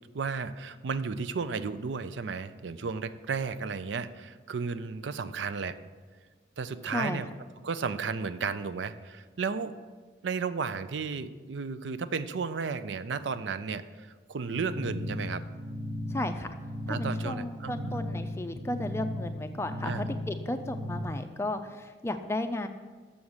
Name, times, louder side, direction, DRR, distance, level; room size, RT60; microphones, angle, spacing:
voice 1, 0.1-5.8 6.6-7.3 7.6-9.7 10.2-15.4 16.9-18.0 19.8-20.1, right 5 dB, 80° right, 13 dB, 0.5 m, -33 dB
voice 2, 6.9-7.2 16.1-16.5 16.8-22.7, left 1 dB, 15° left, 8 dB, 0.4 m, -34 dB
sound 1, 14.5-21.0, left 1 dB, 65° right, 1.2 m, -36 dB
7.0 x 6.4 x 7.2 m, 1.4 s
head